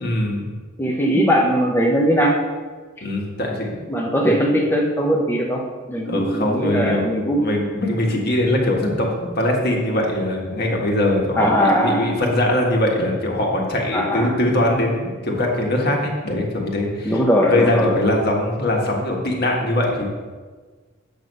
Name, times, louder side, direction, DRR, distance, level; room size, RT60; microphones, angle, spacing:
voice 1, 0.0-0.5 3.0-3.8 6.1-7.1 7.3-20.1, left 1 dB, 50° left, 0 dB, 1.6 m, -21 dB
voice 2, 0.8-2.4 3.9-5.6 5.9-7.4 11.4-12.1 13.9-14.4 17.0-18.0, equal, 10° left, -1 dB, 0.8 m, -19 dB
8.1 x 6.3 x 5.4 m, 1.4 s
head